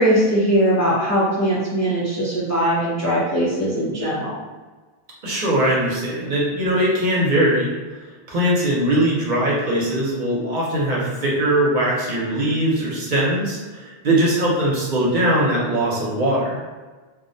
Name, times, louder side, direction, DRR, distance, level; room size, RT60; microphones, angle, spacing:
voice 1, 0.0-4.3, equal, 30° left, -8 dB, 0.3 m, -20 dB
voice 2, 5.2-7.7 8.3-16.6, right 1 dB, 55° right, -5 dB, 0.7 m, -20 dB
2.4 x 2.0 x 2.6 m, 1.3 s
omnidirectional pair, 1.0 m